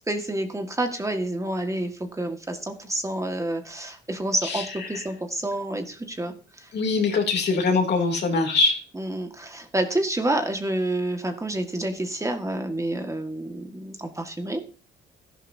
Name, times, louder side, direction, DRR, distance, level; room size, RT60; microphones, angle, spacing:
voice 1, 0.1-6.7 7.5-7.6 8.9-14.7, right 1 dB, 15° right, 5 dB, 1.7 m, -29 dB
voice 2, 6.7-8.8, left 4 dB, 60° left, 3 dB, 2.9 m, -23 dB
13.0 x 11.0 x 2.7 m, 0.37 s
cardioid pair, 90°, 20 cm